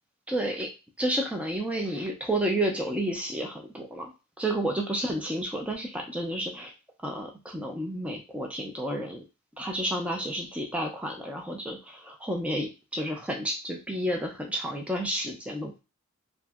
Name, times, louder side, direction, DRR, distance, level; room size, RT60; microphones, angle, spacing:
voice 1, 0.3-0.7 1.0-4.1 4.4-6.7 7.0-9.2 9.6-15.8, right 1 dB, 5° right, 1 dB, 0.3 m, -31 dB
2.8 x 2.5 x 2.3 m, 0.29 s
head